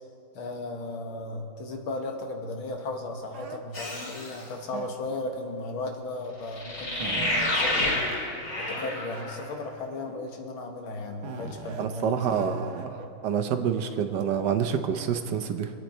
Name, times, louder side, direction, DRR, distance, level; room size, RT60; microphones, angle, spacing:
voice 1, 0.3-8.3 8.6-12.7, left 2 dB, 90° left, 2 dB, 2.3 m, -36 dB
sound 1, 3.3-3.6 4.7-5.2 6.2-6.3 6.6-8.2 8.7-8.9 9.1-9.2 10.0-10.4 11.2-13.1, right 5 dB, 85° right, 1.8 m, -40 dB
sound 2, 3.7-4.4 6.5-9.4, left 1 dB, 40° left, 2.7 m, -29 dB
voice 2, 11.8-12.9 13.2-15.7, right 7 dB, 65° right, 8 dB, 1.4 m, -27 dB
25.0 x 9.1 x 4.4 m, 2.6 s
omnidirectional pair, 2.2 m